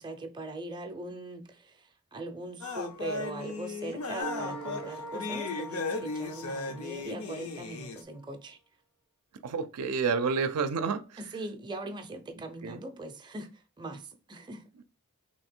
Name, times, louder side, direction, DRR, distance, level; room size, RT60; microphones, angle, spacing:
voice 1, 0.0-8.6 11.2-13.5 13.8-14.8, right 2 dB, 20° right, 0.5 m, -41 dB
sound 1, 2.6-8.0, left 3 dB, 70° left, 0.6 m, -36 dB
sound 2, 4.2-7.6, right 1 dB, 85° left, 1.4 m, -41 dB
voice 2, 9.4-11.2 12.6-12.8, right 5 dB, 85° right, 0.4 m, -29 dB
3.2 x 2.9 x 4.3 m
head